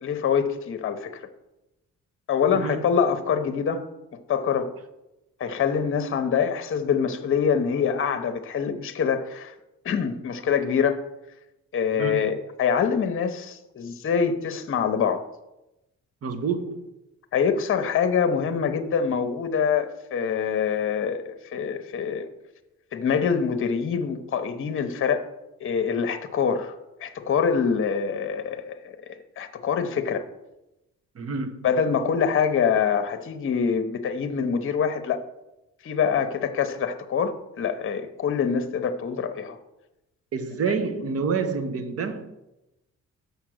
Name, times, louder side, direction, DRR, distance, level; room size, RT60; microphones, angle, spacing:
voice 1, 0.0-1.2 2.3-3.8 4.3-4.7 5.4-9.5 9.8-11.0 11.7-15.3 17.3-22.3 22.9-25.3 25.6-26.7 27.0-30.2 31.6-35.2 35.8-39.6, left 6 dB, 45° left, 0.8 m, -25 dB
voice 2, 2.5-2.9 11.9-12.3 16.2-16.9 31.1-31.7 40.3-42.3, right 5 dB, 50° right, 1.0 m, -28 dB
6.7 x 5.7 x 6.3 m
cardioid pair, 90°, 30 cm